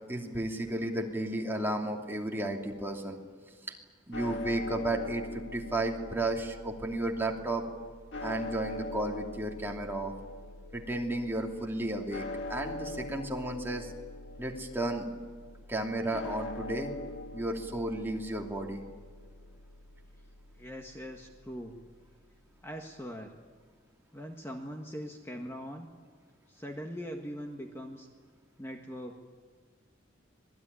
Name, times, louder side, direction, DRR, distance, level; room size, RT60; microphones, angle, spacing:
voice 1, 0.1-3.2 4.1-7.6 8.2-10.1 10.7-13.9 14.4-15.1 15.7-16.9 17.3-18.8, right 1 dB, 10° right, 0 dB, 2.8 m, -33 dB
sound 1, 4.1-22.4, left 2 dB, 60° left, 2.0 m, -43 dB
voice 2, 20.6-21.8 22.6-23.4 24.1-25.9 26.5-28.1 28.6-29.2, equal, 15° left, 2 dB, 1.6 m, -41 dB
26.0 x 20.0 x 9.9 m, 1.5 s
head